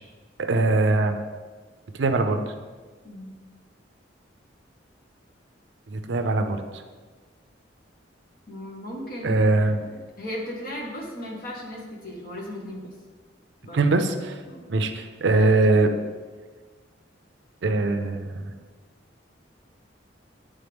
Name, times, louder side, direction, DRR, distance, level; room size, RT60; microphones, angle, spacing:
voice 1, 0.5-1.2 2.0-2.4 5.9-6.6 9.2-9.8 13.7-14.4 14.7-15.9 17.6-18.4, right 2 dB, 65° right, 7 dB, 0.5 m, -21 dB
voice 2, 3.0-3.4 8.5-12.9 13.6-13.9 14.4-14.7, left 1 dB, 50° left, -2 dB, 1.3 m, -36 dB
9.7 x 3.6 x 3.5 m, 1.4 s
head